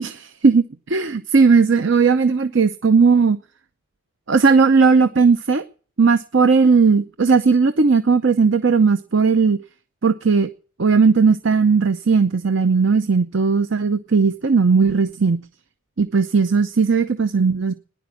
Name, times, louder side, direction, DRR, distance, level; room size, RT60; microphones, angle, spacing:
voice 1, 0.4-3.4 4.3-5.6 6.0-9.6 10.0-10.5 10.8-15.4 16.0-17.7, right 5 dB, 55° right, 11 dB, 0.6 m, -16 dB
14.0 x 10.5 x 8.4 m, 0.41 s
head